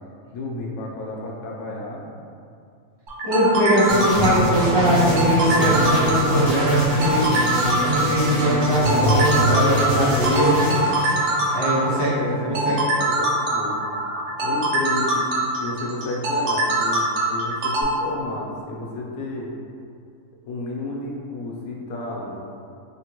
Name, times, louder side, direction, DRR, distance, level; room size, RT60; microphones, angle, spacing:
voice 1, 0.3-2.0 11.7-13.9 14.4-15.3 15.6-19.5 20.4-22.5, left 2 dB, 80° left, -2 dB, 1.0 m, -32 dB
sound 1, 3.1-17.8, right 2 dB, 70° right, 0.9 m, -23 dB
voice 2, 3.2-7.3 7.8-10.7 11.5-12.1 12.4-12.8, equal, 30° right, -10 dB, 0.5 m, -21 dB
sound 2, 3.9-12.0, right 1 dB, 85° right, 1.3 m, -23 dB
3.5 x 2.2 x 2.9 m, 2.4 s
omnidirectional pair, 1.5 m